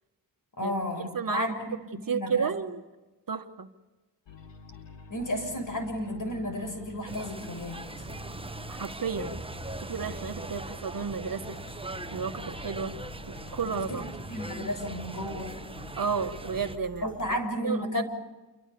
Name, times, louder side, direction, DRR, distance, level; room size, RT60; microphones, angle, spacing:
voice 1, 0.6-1.6 1.9-2.5 5.1-8.1 13.6-15.5 17.0-18.0, left 1 dB, 45° left, 8 dB, 6.6 m, -33 dB
voice 2, 1.1-1.5 2.1-2.8 3.3-3.7 8.7-9.4 9.8-11.6 12.1-12.9 13.5-14.0 16.0-18.0, right 6 dB, 50° right, 7 dB, 1.6 m, -32 dB
sound 1, 4.3-17.4, left 4 dB, 85° left, 3.8 m, -48 dB
sound 2, 7.1-16.8, right 2 dB, 15° right, 1.1 m, -40 dB
29.0 x 24.0 x 7.0 m, 1.1 s
cardioid pair, 70°, 43 cm